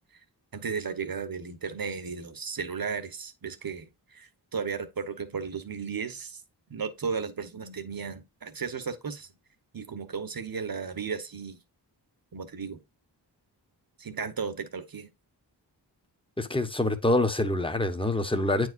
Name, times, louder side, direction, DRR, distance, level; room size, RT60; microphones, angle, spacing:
voice 1, 0.5-6.4 6.7-9.3 9.7-11.6 12.3-12.8 14.0-15.1, right 5 dB, 55° right, 1.2 m, -35 dB
voice 2, 16.4-18.7, left 2 dB, 10° left, 1.1 m, -26 dB
8.9 x 4.8 x 2.5 m
wide cardioid pair, 65°, 43 cm